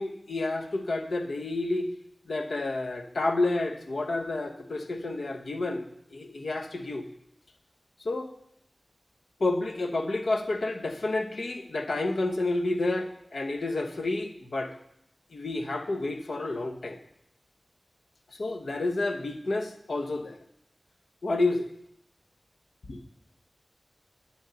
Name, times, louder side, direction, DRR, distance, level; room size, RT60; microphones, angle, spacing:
voice 1, 0.0-1.9 2.3-7.1 8.0-8.3 9.4-14.7 15.3-17.0 18.3-20.4 21.2-21.7 22.9-23.0, left 2 dB, 85° left, 5 dB, 1.0 m, -30 dB
10.5 x 8.4 x 4.0 m, 0.75 s
cardioid pair, 40°, 0 cm